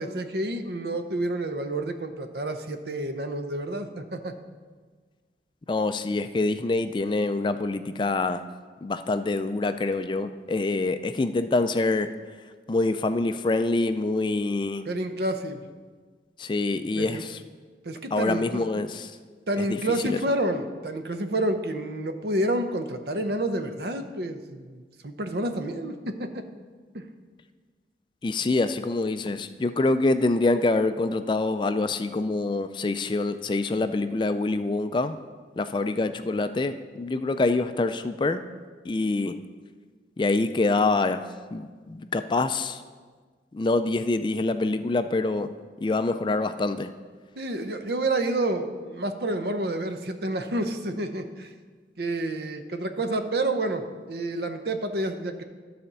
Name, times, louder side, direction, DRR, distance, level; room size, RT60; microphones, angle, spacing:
voice 1, 0.0-4.3 14.9-15.6 17.0-17.3 17.8-18.6 19.5-26.3 26.9-27.0 47.4-51.5 52.0-55.4, right 1 dB, 65° right, 7 dB, 0.7 m, -29 dB
voice 2, 5.7-8.5 8.8-12.1 12.7-14.9 16.4-17.4 18.1-19.2 19.6-20.2 28.2-35.2 35.6-38.4 38.8-39.4 40.2-41.2 41.5-42.8 43.5-45.5 45.8-46.9, left 2 dB, 25° left, 10 dB, 0.3 m, -25 dB
12.5 x 4.3 x 6.7 m, 1.5 s
head